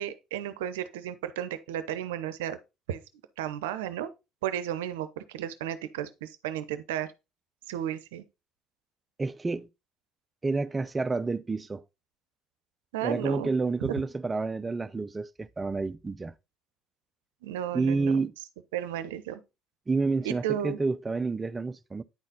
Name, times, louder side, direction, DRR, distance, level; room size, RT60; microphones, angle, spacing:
voice 1, 0.0-2.6 2.9-3.0 3.4-4.1 4.4-7.1 7.7-8.2 12.9-13.5 17.4-18.2 18.7-19.4 20.2-20.8, right 11 dB, 85° right, 0.7 m, -33 dB
voice 2, 9.2-9.7 10.4-11.8 13.0-16.3 17.7-18.3 19.9-22.0, right 3 dB, 25° right, 0.6 m, -29 dB
9.6 x 4.1 x 3.9 m
hypercardioid pair, 70°, 0 cm